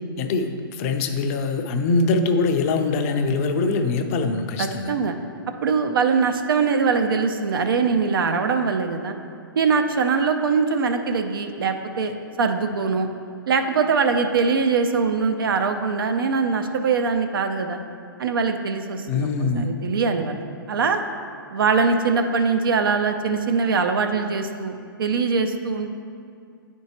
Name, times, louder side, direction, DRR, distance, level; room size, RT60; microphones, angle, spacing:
voice 1, 0.2-4.9 19.1-19.7, left 3 dB, 40° left, 6 dB, 0.5 m, -23 dB
voice 2, 4.6-5.1 5.6-9.1 9.6-13.1 13.5-17.8 18.2-20.4 20.7-21.0 21.5-25.9, right 5 dB, 70° right, 6 dB, 0.5 m, -22 dB
9.0 x 4.4 x 2.9 m, 2.5 s
hypercardioid pair, 125°, 12 cm